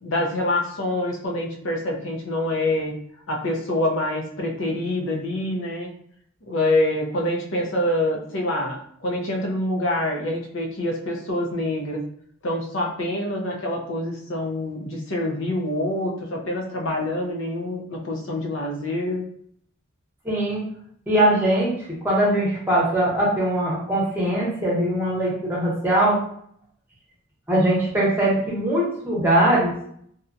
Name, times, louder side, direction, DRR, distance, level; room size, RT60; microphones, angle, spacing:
voice 1, 0.0-2.9 3.3-5.9 6.5-12.0 12.4-19.2, left 1 dB, 80° left, 1 dB, 0.6 m, -26 dB
voice 2, 20.2-20.6 21.1-26.2 27.5-29.7, right 1 dB, 10° right, -6 dB, 0.9 m, -21 dB
2.8 x 2.2 x 2.5 m, 0.65 s
head